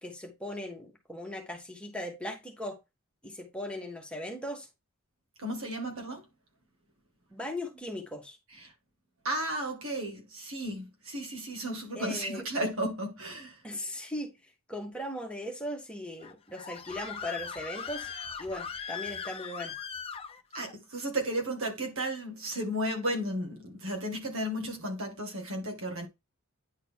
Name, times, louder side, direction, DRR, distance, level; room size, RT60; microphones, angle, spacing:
voice 1, 0.0-2.8 3.2-4.7 7.3-8.4 11.9-12.4 13.6-14.3 14.7-18.1 18.4-19.8, left 1 dB, 5° left, 1.7 m, -38 dB
voice 2, 5.4-6.3 8.5-8.7 9.2-13.7 20.5-26.1, right 1 dB, 70° right, 2.1 m, -34 dB
Screaming, 16.2-20.7, left 6 dB, 25° left, 0.7 m, -40 dB
9.6 x 4.1 x 3.7 m
head